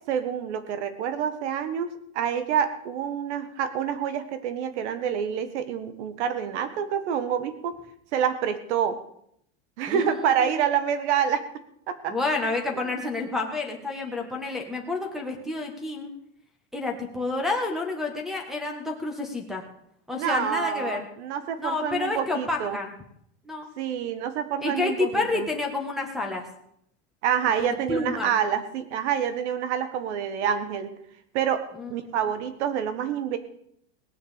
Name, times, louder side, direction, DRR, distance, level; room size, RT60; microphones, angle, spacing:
voice 1, 0.0-7.8 8.1-9.0 9.8-11.4 11.9-12.1 20.1-22.8 23.8-25.5 27.2-30.9 31.3-31.6 31.9-33.4, right 8 dB, 75° right, 11 dB, 1.7 m, -27 dB
voice 2, 9.9-10.4 12.1-16.1 16.7-19.6 20.1-21.0 21.6-22.9 23.4-23.7 24.6-26.5 27.6-28.3 31.8-31.9, left 3 dB, ahead, -2 dB, 1.7 m, -29 dB
18.5 x 6.8 x 8.4 m, 0.71 s
supercardioid pair, 170°, 34 cm